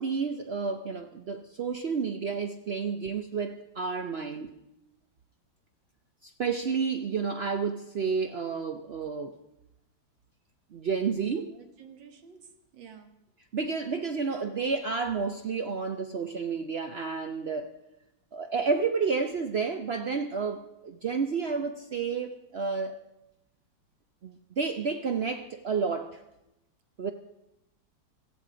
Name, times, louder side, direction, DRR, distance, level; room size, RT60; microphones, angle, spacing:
voice 1, 0.0-4.5 6.2-9.4 10.7-11.5 13.5-17.7 18.3-23.0 24.2-26.2 27.0-27.1, right 5 dB, 90° right, 7 dB, 0.5 m, -30 dB
voice 2, 11.2-13.1, right 7 dB, 75° right, 7 dB, 2.1 m, -51 dB
17.0 x 14.5 x 5.0 m, 0.89 s
omnidirectional pair, 2.1 m